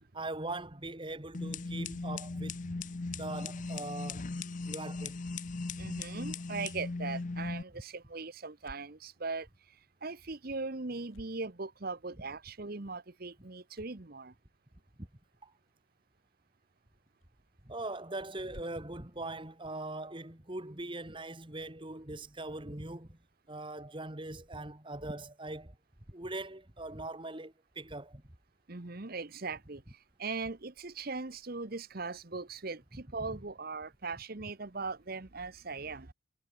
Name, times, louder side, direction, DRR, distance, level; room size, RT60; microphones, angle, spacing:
voice 1, 0.1-2.7 3.2-4.2 4.7-5.2 5.7-5.9 15.0-15.1 15.4-15.5 17.6-23.2 23.5-25.8 26.1-28.2, right 2 dB, 25° right, 2.1 m, -41 dB
sound 1, 1.3-7.6, left 3 dB, 40° left, 0.6 m, -38 dB
voice 2, 2.8-3.2 4.6-4.7 5.6-14.3 28.7-36.1, right 3 dB, 45° right, 1.1 m, -40 dB
sound 2, 6.9-20.5, equal, 80° left, 6.7 m, -62 dB
head